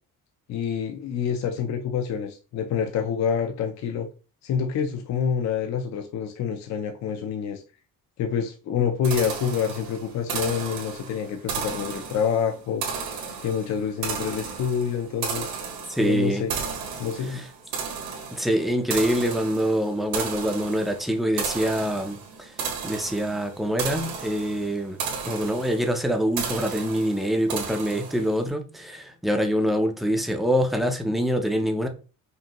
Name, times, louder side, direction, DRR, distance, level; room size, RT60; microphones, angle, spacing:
voice 1, 0.5-4.1 4.4-7.6 8.2-12.9 13.4-15.5 16.0-16.5 17.0-17.4, left 7 dB, 55° left, 0.5 m, -27 dB
sound 1, 9.0-28.4, right 6 dB, 80° right, 1.5 m, -34 dB
voice 2, 15.9-16.4 17.3-17.4 18.3-22.5 22.8-25.0 25.3-31.9, equal, ahead, 0.4 m, -25 dB
5.3 x 2.6 x 2.9 m
cardioid pair, 155°, 35 cm